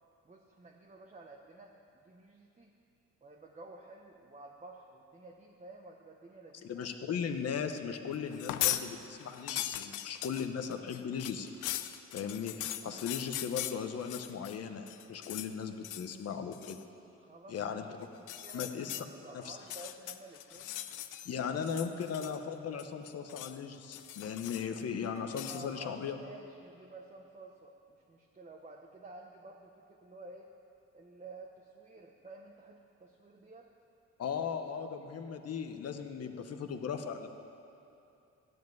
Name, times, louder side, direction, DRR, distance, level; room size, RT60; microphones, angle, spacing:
voice 1, 0.2-2.7 3.2-6.9 17.2-17.8 18.1-20.8 21.3-21.5 21.8-22.0 25.5-30.5 30.9-33.7, right 2 dB, 25° right, 0 dB, 0.9 m, -52 dB
voice 2, 6.6-11.5 12.1-16.8 17.5-17.8 18.5-19.0 19.3-19.6 21.2-26.2 34.2-37.3, left 7 dB, 55° left, 6 dB, 0.9 m, -37 dB
sound 1, 8.3-8.9 9.2-14.6 14.9-15.5 15.8-16.1 16.5-16.8 18.2-19.0 19.6-21.3 21.6-22.5 22.8-23.6 23.9-24.8 25.3-25.6, left 13 dB, 90° left, 0.5 m, -39 dB
13.5 x 5.3 x 9.4 m, 2.8 s
cardioid pair, 90°, 30 cm